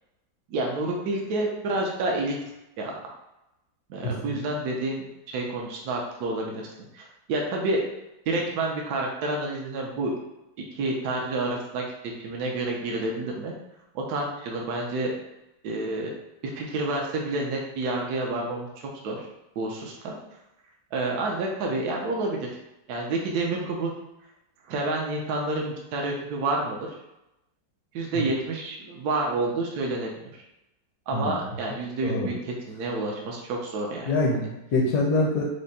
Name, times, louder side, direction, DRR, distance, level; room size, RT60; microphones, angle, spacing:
voice 1, 0.5-2.5 2.8-3.0 3.9-6.7 6.9-7.8 8.3-10.1 10.7-11.8 12.2-13.5 13.9-15.1 15.6-16.1 16.4-18.7 19.0-19.3 19.6-20.1 20.9-22.5 22.9-23.9 24.7-27.0 27.9-30.4 31.1-34.1, right 2 dB, 70° right, 0 dB, 1.2 m, -29 dB
voice 2, 4.0-4.3 31.1-31.4 32.0-32.3 34.1-35.4, left 2 dB, 65° left, -2 dB, 1.1 m, -25 dB
5.0 x 2.1 x 4.1 m, 0.92 s
omnidirectional pair, 1.9 m